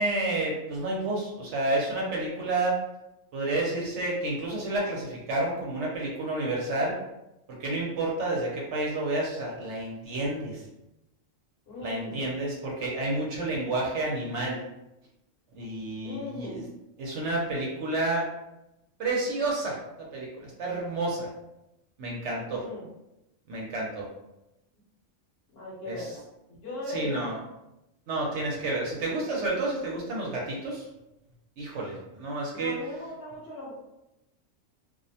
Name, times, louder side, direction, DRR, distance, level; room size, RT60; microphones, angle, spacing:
voice 1, 0.0-2.8 3.3-7.0 7.6-10.6 11.8-14.6 15.6-16.6 17.0-18.3 19.0-21.3 22.0-22.7 23.5-24.1 25.9-26.0 26.9-27.4 28.1-30.9 31.6-32.7, right 2 dB, 70° right, -3 dB, 0.9 m, -30 dB
voice 2, 11.7-12.2 16.0-16.6 22.5-22.9 25.5-26.2 26.6-27.3 32.5-33.7, left 1 dB, 55° left, -5 dB, 0.9 m, -38 dB
2.4 x 2.1 x 2.6 m, 0.91 s
omnidirectional pair, 1.4 m